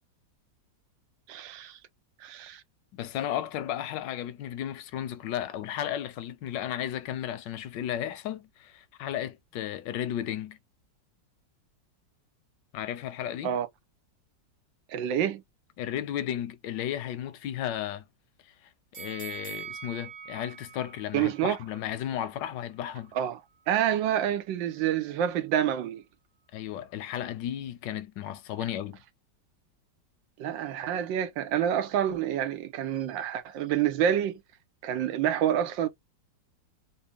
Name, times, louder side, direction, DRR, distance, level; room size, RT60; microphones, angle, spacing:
voice 1, 1.3-1.8 2.2-2.6 13.4-13.7 14.9-15.4 21.1-21.6 23.1-23.4 23.7-26.0 30.4-34.3 34.8-35.9, right 10 dB, 85° right, 1.5 m, -28 dB
voice 2, 2.9-10.6 12.7-13.6 15.8-18.0 19.0-23.1 26.5-29.0, left 11 dB, 80° left, 1.3 m, -34 dB
sound 1, 18.9-22.0 22.5-22.6, right 8 dB, 40° right, 1.0 m, -43 dB
4.1 x 2.2 x 3.4 m
omnidirectional pair, 2.0 m